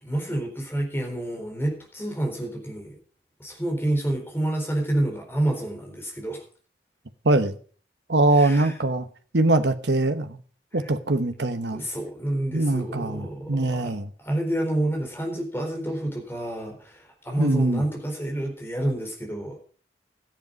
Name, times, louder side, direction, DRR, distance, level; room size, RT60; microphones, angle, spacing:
voice 1, 0.0-3.0 3.4-6.4 8.4-8.8 11.7-13.9 14.2-19.6, right 1 dB, 15° left, 4.1 m, -28 dB
voice 2, 7.2-7.6 8.1-9.1 9.3-10.4 10.7-11.8 12.5-14.1 17.4-17.8, right 2 dB, 80° right, 1.2 m, -22 dB
13.5 x 10.5 x 5.3 m
head